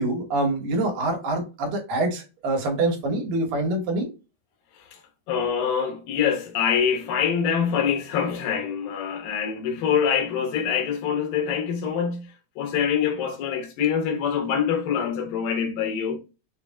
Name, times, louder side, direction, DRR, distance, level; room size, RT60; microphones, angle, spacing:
voice 1, 0.0-4.1, right 2 dB, 85° right, 2.9 m, -25 dB
voice 2, 5.3-12.3 12.6-16.2, left 7 dB, 90° left, 2.7 m, -25 dB
6.6 x 2.6 x 2.3 m
omnidirectional pair, 3.9 m